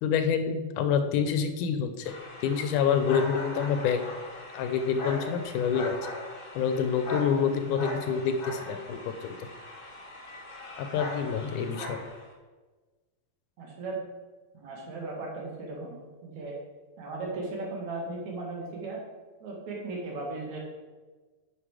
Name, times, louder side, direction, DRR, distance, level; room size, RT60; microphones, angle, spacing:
voice 1, 0.0-2.1 2.4-4.0 4.5-6.1 6.6-9.4 10.8-12.0, left 7 dB, 80° left, 8 dB, 2.1 m, -27 dB
sound 1, 2.0-12.3, left 1 dB, 40° left, 1.3 m, -39 dB
voice 2, 13.6-14.0 14.5-16.6 17.0-19.0 19.4-20.6, right 3 dB, 65° right, -1 dB, 3.1 m, -37 dB
9.6 x 5.8 x 4.8 m, 1.3 s
omnidirectional pair, 3.6 m